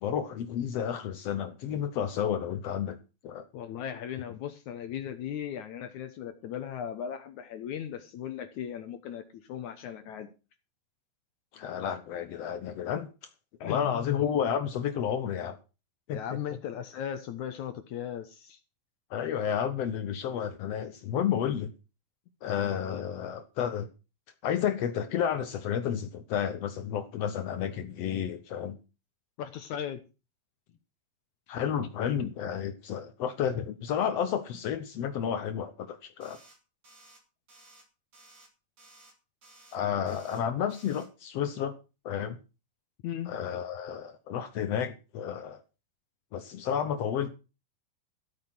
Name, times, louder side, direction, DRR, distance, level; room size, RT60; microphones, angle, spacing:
voice 1, 0.0-3.0 3.2-3.4 11.5-13.1 13.6-15.6 16.1-16.2 19.1-21.7 22.4-23.9 24.4-28.8 31.5-36.4 39.7-41.7 42.0-42.4 43.3-45.6 46.3-47.3, left 8 dB, 90° left, 1.4 m, -31 dB
voice 2, 3.5-10.3 13.6-14.3 16.1-18.6 22.9-23.3 29.4-30.0 43.0-43.3, left 9 dB, 65° left, 2.1 m, -37 dB
sound 1, 36.2-36.6 36.8-37.2 37.5-37.8 38.1-38.5 38.8-39.1 39.4-39.8 40.1-40.4 40.7-41.1, right 2 dB, 45° right, 4.9 m, -56 dB
14.0 x 8.7 x 6.0 m
omnidirectional pair, 4.2 m